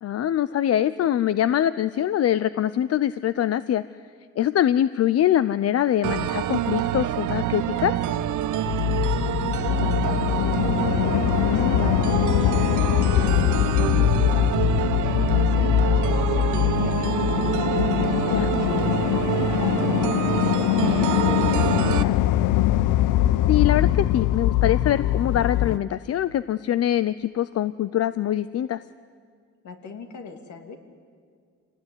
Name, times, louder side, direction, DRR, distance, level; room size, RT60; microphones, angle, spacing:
voice 1, 0.0-3.8 4.4-7.9 11.5-11.9 18.3-18.5 23.5-28.8, left 11 dB, 55° left, 15 dB, 0.6 m, -23 dB
sound 1, 6.0-22.0, right 11 dB, 75° right, 0.9 m, -26 dB
sound 2, 8.7-25.8, left 13 dB, 90° left, 0.7 m, -22 dB
voice 2, 9.1-10.4 10.7-12.1 12.4-14.6 15.1-17.5 17.9-22.3 29.6-30.8, left 5 dB, 70° left, 5 dB, 2.9 m, -39 dB
26.5 x 18.5 x 9.7 m, 2.1 s
cardioid pair, 90°, 30 cm